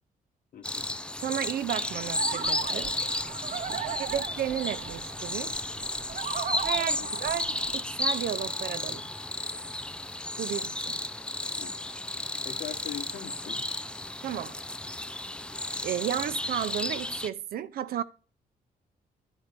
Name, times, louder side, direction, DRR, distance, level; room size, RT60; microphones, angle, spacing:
voice 1, 0.5-0.9 3.9-4.2 7.0-7.1 11.6-11.8 12.4-13.6, left 9 dB, 70° left, 1.4 m, -42 dB
sound 1, 0.6-17.3, left 1 dB, 5° left, 0.4 m, -33 dB
voice 2, 1.2-3.0 4.0-5.6 6.6-9.1 10.4-11.0 14.2-14.5 15.8-18.0, right 10 dB, 75° right, 0.6 m, -33 dB
sound 2, 1.9-7.8, right 8 dB, 55° right, 1.1 m, -38 dB
11.5 x 4.5 x 6.7 m
cardioid pair, 130°, 15 cm